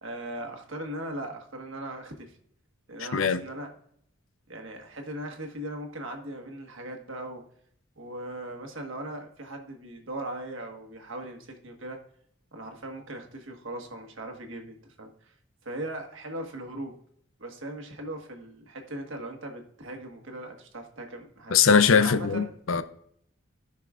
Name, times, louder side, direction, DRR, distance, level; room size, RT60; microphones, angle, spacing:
voice 1, 0.0-2.3 2.9-3.7 4.5-7.4 8.0-12.0 12.5-15.3 15.6-17.0 17.4-21.6 21.9-22.5, right 1 dB, 70° right, 1.5 m, -39 dB
voice 2, 21.5-22.8, left 6 dB, 80° left, 0.6 m, -21 dB
16.5 x 5.8 x 2.4 m
head